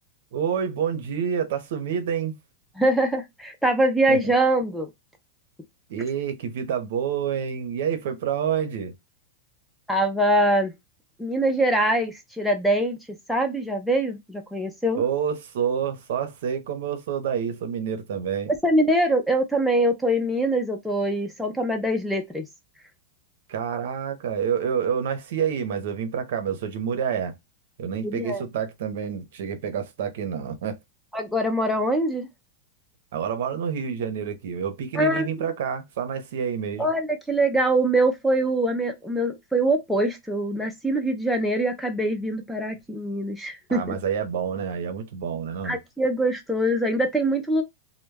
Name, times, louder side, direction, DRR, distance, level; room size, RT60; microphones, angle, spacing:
voice 1, 0.3-2.4 4.1-4.3 5.9-8.9 14.9-18.5 23.5-27.3 27.8-30.8 33.1-36.9 43.7-45.8, right 7 dB, 65° right, 0.6 m, -28 dB
voice 2, 2.8-4.9 9.9-10.7 11.2-13.0 13.3-15.0 18.6-22.5 28.0-28.4 31.1-32.3 34.9-35.3 36.8-44.0 45.6-47.6, right 1 dB, ahead, 0.3 m, -23 dB
2.2 x 2.0 x 3.2 m
supercardioid pair, 165°, 0 cm